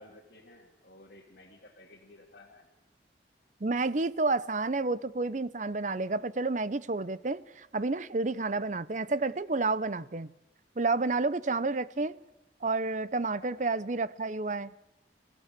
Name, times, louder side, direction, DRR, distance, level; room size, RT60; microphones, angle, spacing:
voice 1, 0.0-2.7 8.1-8.4 13.1-13.2, left 1 dB, 60° left, 2.8 m, -55 dB
voice 2, 3.6-10.3 10.8-12.2 12.6-14.7, right 3 dB, 45° right, 0.7 m, -30 dB
30.0 x 16.0 x 6.8 m
head